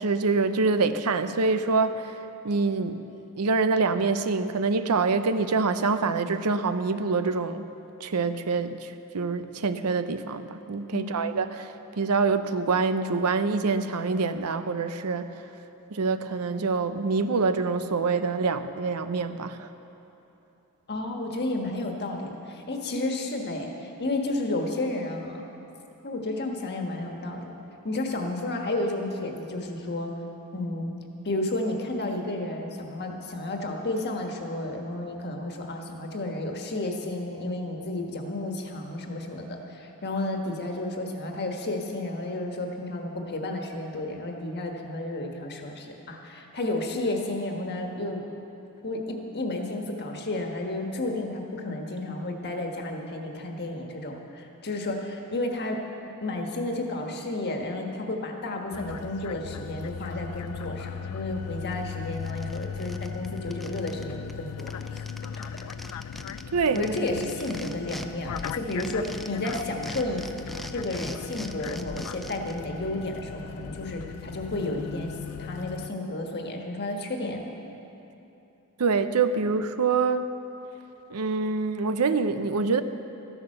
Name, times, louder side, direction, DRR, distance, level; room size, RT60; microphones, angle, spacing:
voice 1, 0.0-2.2 2.4-7.7 8.0-15.3 15.9-19.7 66.5-66.9 78.8-80.3 81.1-82.8, right 4 dB, 85° right, 10 dB, 0.6 m, -26 dB
voice 2, 20.9-25.4 26.0-27.6 27.8-30.1 30.5-30.9 31.2-48.2 48.8-55.8 56.2-65.0 66.7-70.2 70.7-75.1 75.4-77.5, left 2 dB, 50° left, 2 dB, 1.5 m, -32 dB
sound 1, 58.7-75.9, left 7 dB, 80° left, 0.4 m, -38 dB
sound 2, 61.7-61.8 62.1-64.0 64.3-64.4 64.6-68.1 68.4-72.6, equal, ahead, 0.4 m, -41 dB
13.5 x 11.0 x 6.6 m, 2.9 s
head